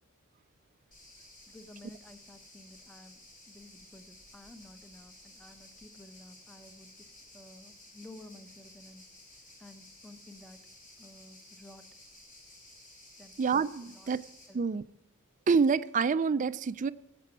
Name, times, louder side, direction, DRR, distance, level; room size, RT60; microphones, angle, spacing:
sound 1, 0.9-14.5, left 1 dB, 40° left, 3.6 m, -55 dB
voice 1, 1.5-3.2 3.5-10.6 11.0-11.9 13.2-13.4 13.9-14.1 14.5-14.9, left 1 dB, 5° left, 8 dB, 0.9 m, -53 dB
voice 2, 13.4-14.2 14.5-14.8 15.5-16.9, right 5 dB, 35° right, 15 dB, 0.4 m, -27 dB
17.5 x 7.6 x 6.1 m, 0.97 s
head